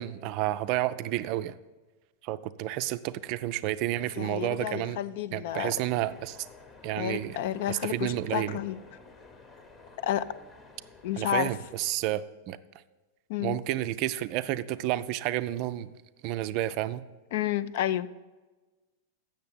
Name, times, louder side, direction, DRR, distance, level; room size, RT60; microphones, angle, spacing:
voice 1, 0.0-1.6 2.2-5.0 5.3-6.4 6.8-7.4 7.7-8.6 11.2-12.6 13.4-15.9 16.2-17.0, right 14 dB, 45° right, 13 dB, 0.4 m, -30 dB
voice 2, 4.2-5.7 7.0-8.8 10.0-10.2 11.0-11.5 13.3-13.6 17.3-18.1, left 12 dB, 50° left, 15 dB, 0.4 m, -30 dB
sound 1, 5.5-12.0, left 4 dB, 25° left, 1.0 m, -52 dB
7.6 x 6.6 x 8.0 m, 1.2 s
figure-of-eight pair, 90°, 0 cm